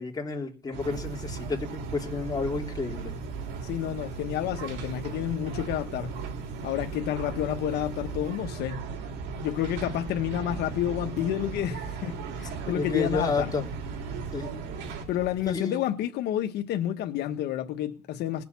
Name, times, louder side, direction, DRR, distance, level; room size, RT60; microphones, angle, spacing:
voice 1, 0.0-3.1 12.7-13.7 14.3-14.5 15.4-15.7, left 4 dB, 20° left, 3.6 m, -30 dB
sound 1, 0.7-15.1, right 4 dB, 90° right, 2.8 m, -37 dB
sound 2, 0.8-15.5, right 5 dB, 40° right, 4.9 m, -45 dB
voice 2, 3.6-6.1 6.6-8.8 9.4-13.5 15.1-18.4, left 12 dB, 80° left, 1.3 m, -30 dB
20.0 x 6.8 x 8.4 m
cardioid pair, 110°, 17 cm